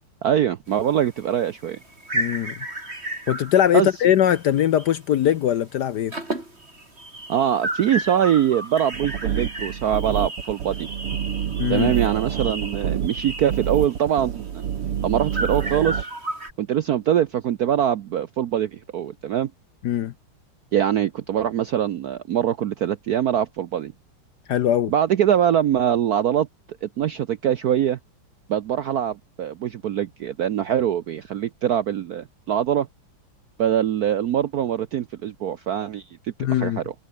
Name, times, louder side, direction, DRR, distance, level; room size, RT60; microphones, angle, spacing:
voice 1, 0.2-1.8 3.7-3.9 7.3-10.9 11.7-14.6 15.0-16.1 16.6-19.5 20.7-23.9 24.9-26.5 26.8-28.0 28.5-32.9 33.6-36.9, right 10 dB, 65° right, 0.9 m, -23 dB
sound 1, 0.7-5.0 5.3-5.6 5.9-16.5, right 1 dB, 25° right, 6.8 m, -33 dB
voice 2, 2.1-2.6 3.3-6.1 11.6-11.9 19.8-20.1 24.5-24.9 36.4-36.8, left 10 dB, 65° left, 1.1 m, -21 dB
sound 2, 8.9-16.0, right 9 dB, 90° right, 2.5 m, -28 dB
omnidirectional pair, 2.4 m